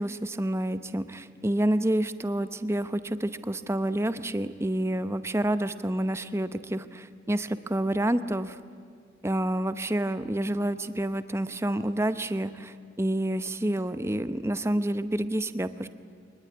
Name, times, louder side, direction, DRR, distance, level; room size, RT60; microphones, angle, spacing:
voice 1, 0.0-8.6 9.2-15.9, right 1 dB, 15° right, 12 dB, 0.8 m, -28 dB
24.0 x 20.5 x 9.7 m, 2.1 s
head